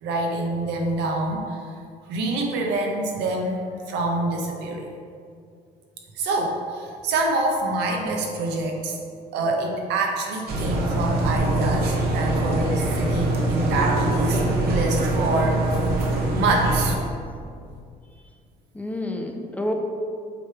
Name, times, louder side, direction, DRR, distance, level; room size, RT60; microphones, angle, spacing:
voice 1, 0.0-1.7 2.1-4.9 6.1-9.0 9.3-14.4 14.7-15.6 16.3-17.0, right 2 dB, 85° right, 1 dB, 1.1 m, -26 dB
sound 1, 10.5-16.9, right 2 dB, 65° right, 1.2 m, -23 dB
voice 2, 17.2-17.5 18.7-19.7, left 1 dB, 10° left, 2 dB, 0.6 m, -31 dB
7.5 x 3.4 x 4.8 m, 2.3 s
cardioid pair, 110°, 17 cm